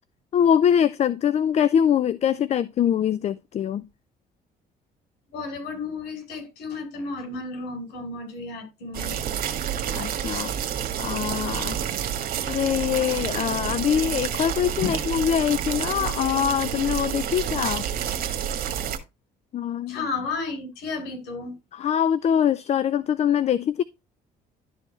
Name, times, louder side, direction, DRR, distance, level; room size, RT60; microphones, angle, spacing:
voice 1, 0.3-3.8 9.9-10.5 11.0-11.8 12.5-17.9 19.5-20.1 21.7-23.8, left 9 dB, 40° left, 0.4 m, -23 dB
voice 2, 5.3-9.2 14.8-15.0 19.9-21.6, left 4 dB, 85° left, 4.0 m, -32 dB
sound 1, 8.9-19.0, right 9 dB, 60° right, 1.5 m, -29 dB
11.5 x 4.5 x 4.3 m
cardioid pair, 110°, 17 cm